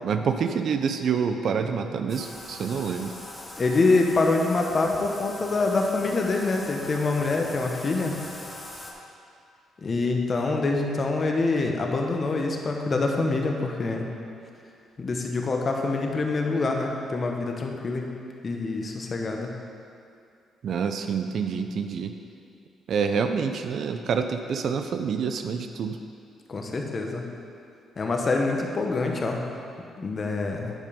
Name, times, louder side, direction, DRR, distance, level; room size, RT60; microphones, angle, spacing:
voice 1, 0.0-3.1 20.6-22.1 22.9-26.0, right 6 dB, 60° right, 7 dB, 0.4 m, -27 dB
Bathtub (filling or washing), 2.1-8.9, left 1 dB, 15° left, 1.2 m, -41 dB
voice 2, 3.6-8.2 9.8-14.1 15.0-18.1 18.4-19.5 26.5-27.2 28.0-29.4 30.0-30.7, left 3 dB, 40° left, 2 dB, 1.1 m, -25 dB
9.3 x 5.3 x 5.2 m, 2.4 s
cardioid pair, 90°, 0 cm